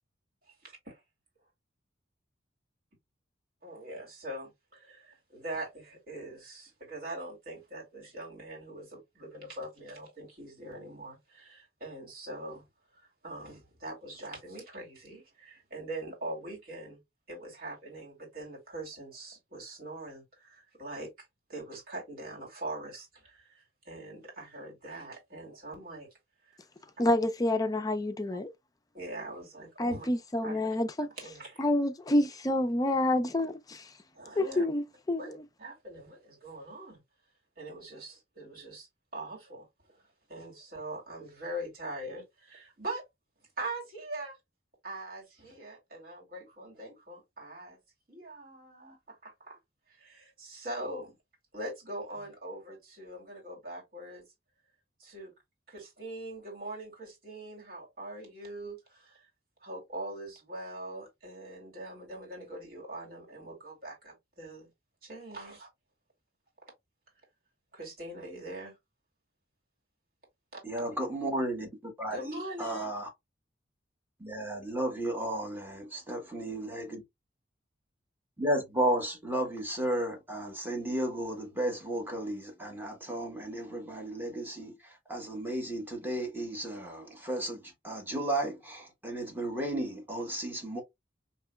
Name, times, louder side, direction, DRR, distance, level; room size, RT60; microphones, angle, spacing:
voice 1, 0.6-1.0 3.6-12.6 13.0-17.0 17.3-26.1 26.5-26.6 28.9-30.1 30.4-30.6 31.2-31.7 34.1-34.6 35.2-37.0 37.6-38.9 39.1-40.0 40.3-43.0 43.6-44.4 44.8-47.8 48.1-49.6 49.9-51.1 51.5-54.2 55.0-55.3 55.7-59.3 59.6-64.7 65.0-65.7 67.7-68.7 72.1-72.9, right 1 dB, 50° right, 2.3 m, -42 dB
voice 2, 27.0-28.5 29.8-31.1 31.6-33.9 34.4-35.3, left 1 dB, 20° left, 0.5 m, -28 dB
voice 3, 70.6-73.1 74.2-77.0 78.4-90.8, right 1 dB, 10° right, 1.4 m, -34 dB
4.7 x 3.0 x 2.2 m
head